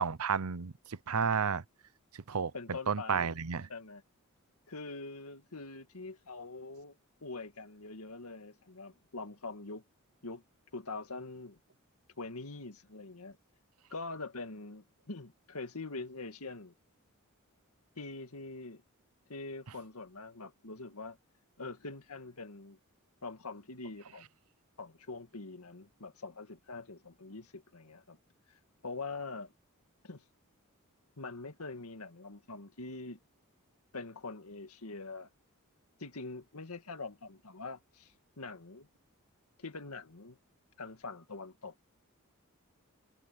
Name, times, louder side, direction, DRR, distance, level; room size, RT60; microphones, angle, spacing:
voice 1, 0.0-1.6 2.1-2.5 2.9-3.7, right 6 dB, 85° right, 0.8 m, -31 dB
voice 2, 2.5-3.4 3.7-4.0 4.7-9.8 10.2-10.4 10.7-11.6 12.2-13.4 13.9-16.7 18.0-18.8 19.3-21.2 21.6-22.8 23.2-24.3 24.8-28.2 28.5-29.5 30.0-30.2 31.2-33.2 33.9-35.3 36.0-38.9 39.6-40.4 40.8-41.7, left 3 dB, 90° left, 1.9 m, -44 dB
head